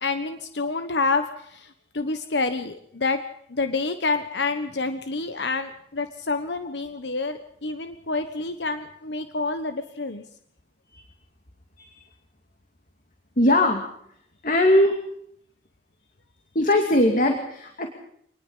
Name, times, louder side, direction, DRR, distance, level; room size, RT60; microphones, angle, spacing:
voice 1, 0.0-3.2 3.5-10.2, left 3 dB, 80° left, 9 dB, 1.2 m, -28 dB
voice 2, 13.4-13.8 14.4-15.0 16.5-17.9, left 1 dB, 45° left, 4 dB, 2.4 m, -20 dB
25.0 x 20.0 x 5.7 m, 0.71 s
head